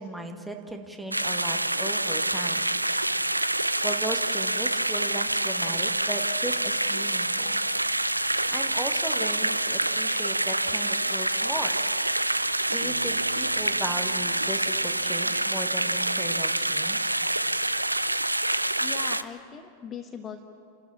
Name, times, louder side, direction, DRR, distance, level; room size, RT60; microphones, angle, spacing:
voice 1, 0.0-2.7 3.8-7.6 8.2-11.7 12.3-17.2, right 1 dB, 5° right, 4 dB, 1.9 m, -37 dB
sound 1, 1.1-19.2, right 1 dB, 85° right, 0.5 m, -26 dB
Bass guitar, 12.8-17.1, right 7 dB, 70° right, 1.0 m, -47 dB
voice 2, 18.8-20.4, left 7 dB, 25° left, 6 dB, 1.1 m, -40 dB
29.5 x 12.5 x 8.6 m, 2.4 s
figure-of-eight pair, 90°, 0 cm